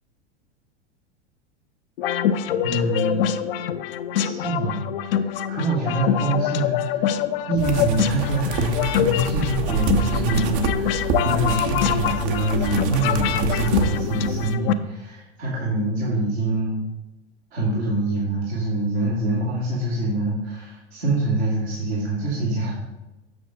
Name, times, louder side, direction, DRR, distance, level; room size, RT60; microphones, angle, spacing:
sound 1, 2.0-14.7, left 9 dB, 55° left, 0.6 m, -25 dB
voice 1, 2.6-3.4 4.1-7.1 7.5-16.8 17.5-22.7, right 2 dB, 70° right, -6 dB, 2.3 m, -25 dB
sound 2, 7.6-14.5, right 4 dB, 40° right, 0.8 m, -27 dB
7.9 x 6.2 x 3.7 m, 1.0 s
figure-of-eight pair, 90°, 34 cm